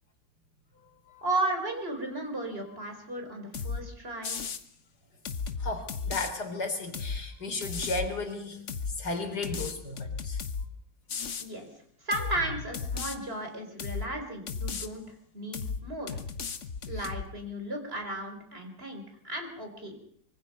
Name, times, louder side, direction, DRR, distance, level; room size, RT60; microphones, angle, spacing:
voice 1, 1.2-4.4 11.4-11.7 12.0-16.2 16.9-20.0, right 1 dB, 30° right, 4 dB, 4.9 m, -35 dB
sound 1, 3.5-3.8 4.2-4.6 5.2-6.3 6.9-7.2 7.6-8.1 8.7-8.9 9.4-10.7 11.1-11.5 12.1-12.4 12.7-13.2 13.8-14.1 14.5-14.9 15.5-15.8 16.1-17.2, left 5 dB, 45° left, 1.5 m, -34 dB
voice 2, 5.6-8.6 9.0-10.4 16.9-17.0, left 2 dB, 60° left, 7 dB, 4.2 m, -34 dB
25.0 x 24.0 x 5.6 m, 0.63 s
omnidirectional pair, 2.0 m